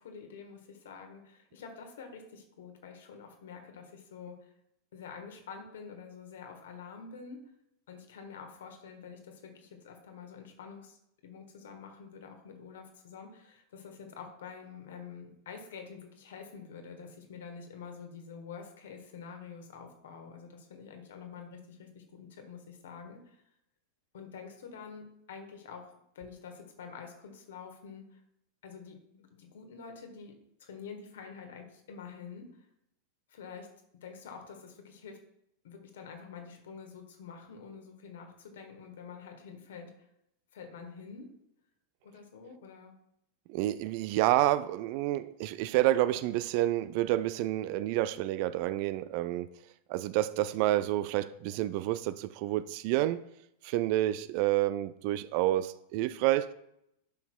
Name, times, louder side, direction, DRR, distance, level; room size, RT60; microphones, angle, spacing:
voice 1, 0.0-4.5 4.9-7.4 7.9-11.0 11.2-23.4 24.1-28.2 28.6-32.5 33.3-33.7 34.0-35.2 35.6-40.1 40.5-41.3 42.0-42.9, left 6 dB, 60° left, 4 dB, 1.4 m, -47 dB
voice 2, 43.5-49.5 49.9-53.2 53.6-56.5, right 15 dB, 45° right, 15 dB, 0.3 m, -29 dB
11.5 x 5.9 x 2.3 m, 0.77 s
figure-of-eight pair, 90°, 0 cm